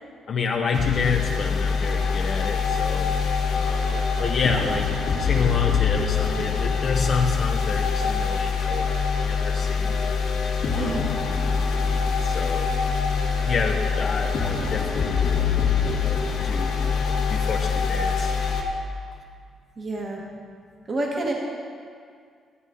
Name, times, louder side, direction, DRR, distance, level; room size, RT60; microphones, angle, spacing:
voice 1, 0.3-3.1 3.5-4.9 5.2-10.0 10.6-11.1 12.2-12.7 13.5-15.2 15.8-18.3, left 5 dB, 50° left, 2 dB, 0.7 m, -29 dB
sound 1, 0.7-18.6, left 5 dB, 75° left, 1.4 m, -24 dB
voice 2, 10.7-11.1 19.8-20.2 20.9-21.3, right 2 dB, 40° right, -2 dB, 1.5 m, -28 dB
13.5 x 7.9 x 3.7 m, 2.1 s
cardioid pair, 90°, 0 cm